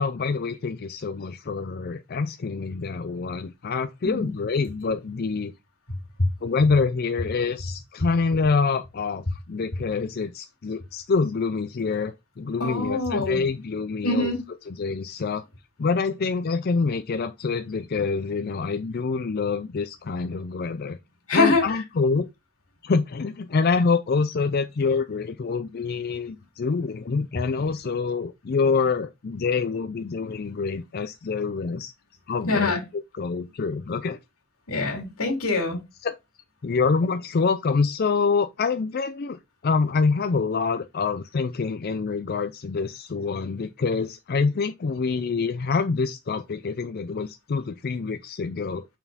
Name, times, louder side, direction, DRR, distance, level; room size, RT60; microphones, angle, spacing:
voice 1, 0.0-5.5 6.4-14.3 14.7-15.4 15.8-21.0 21.3-22.2 22.8-31.9 32.3-32.8 33.1-34.2 36.0-36.2 36.6-48.8, left 4 dB, 45° left, 0.4 m, -26 dB
voice 2, 12.6-13.4 14.0-14.4 21.3-21.6 32.5-32.8 34.7-35.8, left 3 dB, 85° left, 2.9 m, -24 dB
5.7 x 4.5 x 4.0 m
head